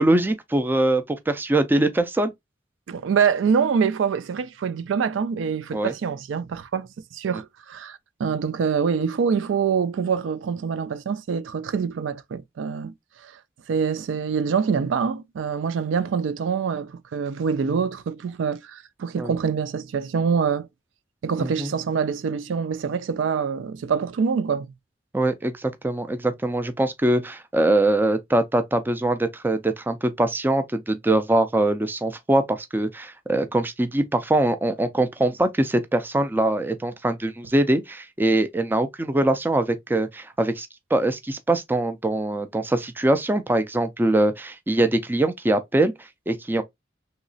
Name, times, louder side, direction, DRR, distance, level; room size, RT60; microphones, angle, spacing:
voice 1, 0.0-2.3 5.7-5.9 19.2-19.3 21.4-21.7 25.1-46.6, right 1 dB, 10° right, 0.3 m, -23 dB
voice 2, 2.9-12.9 13.2-13.3 13.7-20.7 21.2-24.7, right 6 dB, 85° right, 0.4 m, -25 dB
3.0 x 2.8 x 2.6 m
head